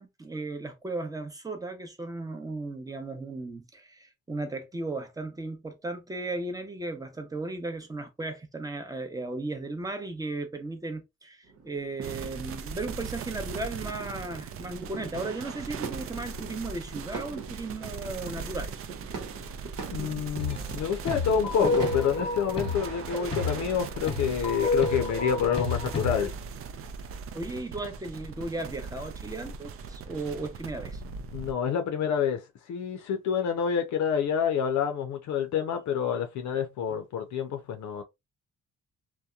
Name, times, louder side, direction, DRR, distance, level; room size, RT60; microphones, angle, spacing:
voice 1, 0.0-18.8 27.3-31.0 36.9-37.0, right 2 dB, 10° right, 0.7 m, -36 dB
sound 1, 11.5-22.9, right 5 dB, 80° right, 0.9 m, -42 dB
sound 2, 12.0-31.5, right 5 dB, 50° right, 0.4 m, -40 dB
voice 2, 19.9-26.3 31.3-32.4 32.7-38.0, left 7 dB, 70° left, 0.5 m, -28 dB
sound 3, 20.4-20.8 21.1-26.3, left 3 dB, 20° left, 1.0 m, -30 dB
2.8 x 2.1 x 2.3 m
cardioid pair, 90°, 30 cm